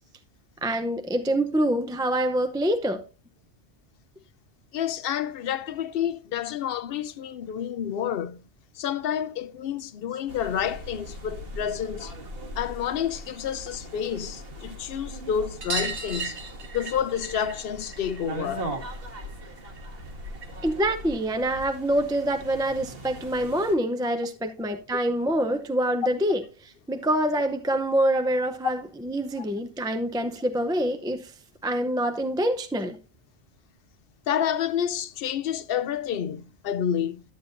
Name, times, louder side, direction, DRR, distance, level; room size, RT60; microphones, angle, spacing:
voice 1, 0.6-3.0 20.6-26.4 26.9-31.3 31.6-33.0, right 1 dB, 5° right, 0.4 m, -25 dB
voice 2, 4.7-8.4 8.7-12.1 12.6-16.4 16.7-18.7 34.3-37.2, left 9 dB, 60° left, 0.7 m, -29 dB
sound 1, 10.3-23.7, equal, 60° right, 1.8 m, -40 dB
sound 2, 15.6-20.7 21.0-22.1 23.5-23.6 23.8-23.9 24.2-24.3 25.6-25.7 26.0-26.1 26.4-26.5 27.7-27.8 28.6-28.7, right 4 dB, 75° right, 1.5 m, -37 dB
11.5 x 8.0 x 2.6 m
omnidirectional pair, 1.2 m